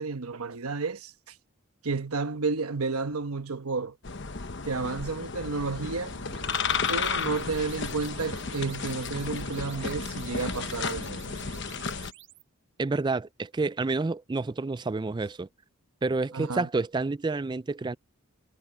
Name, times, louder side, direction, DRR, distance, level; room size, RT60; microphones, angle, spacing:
voice 1, 0.0-1.4 1.8-4.0 4.7-6.2 6.9-11.2 16.3-16.7, right 4 dB, 85° right, 1.1 m, -31 dB
sound 1, 4.0-12.1, left 5 dB, 55° left, 1.0 m, -33 dB
sound 2, 5.6-12.4, right 4 dB, 55° right, 6.7 m, -47 dB
voice 2, 12.8-15.5 16.0-18.0, right 3 dB, 20° right, 0.3 m, -29 dB
head